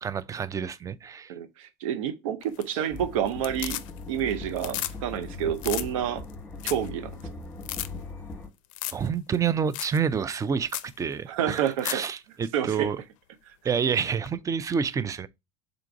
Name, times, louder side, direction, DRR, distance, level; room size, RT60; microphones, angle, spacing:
voice 1, 0.0-1.3 8.9-13.0 13.6-15.3, right 6 dB, 20° right, 0.4 m, -28 dB
voice 2, 1.3-3.8 4.1-6.2 6.6-7.1 11.3-12.0 12.5-12.9, right 9 dB, 80° right, 0.6 m, -29 dB
sound 1, 2.4-3.0 3.3-4.2 4.5-4.9 5.2-5.3 5.6-5.9 6.3-6.4 6.6-6.9 7.2-7.3 7.6-7.9 8.7-9.1 9.3-9.4 9.7-10.0 10.3-10.4 10.7-10.9 11.6-12.1 14.3-14.4, left 15 dB, 80° left, 0.4 m, -34 dB
sound 2, 2.9-8.5, left 3 dB, 15° left, 1.1 m, -40 dB
3.8 x 2.5 x 4.6 m
supercardioid pair, 100°, 17 cm